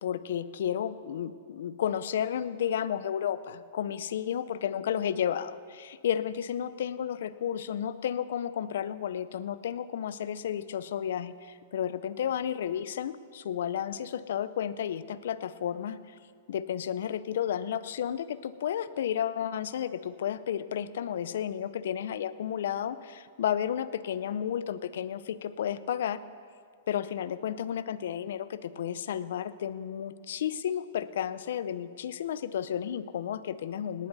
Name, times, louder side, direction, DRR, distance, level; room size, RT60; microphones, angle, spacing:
voice 1, 0.0-16.0 16.5-26.2 26.9-34.1, left 9 dB, 65° left, 15 dB, 0.6 m, -32 dB
19.0 x 18.5 x 2.7 m, 2.2 s
hypercardioid pair, 110°, 0 cm